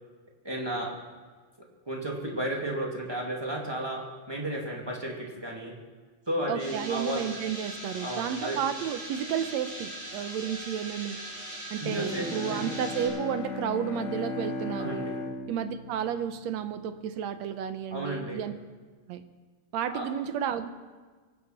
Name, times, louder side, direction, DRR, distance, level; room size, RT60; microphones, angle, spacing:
voice 1, 0.4-1.0 1.9-5.7 6.3-7.2 8.0-8.6 11.8-12.7 14.8-15.1 17.9-18.4 19.9-20.1, right 1 dB, 10° right, -2 dB, 2.2 m, -33 dB
voice 2, 6.5-11.2 11.7-15.1 15.5-18.5 19.1-19.2 19.7-20.7, right 9 dB, 75° right, 10 dB, 2.0 m, -32 dB
sound 1, 6.6-13.1, right 1 dB, 60° right, 7.1 m, -40 dB
Bowed string instrument, 11.8-17.1, left 3 dB, 75° left, 2.6 m, -37 dB
24.0 x 9.7 x 5.9 m, 1.4 s
omnidirectional pair, 3.3 m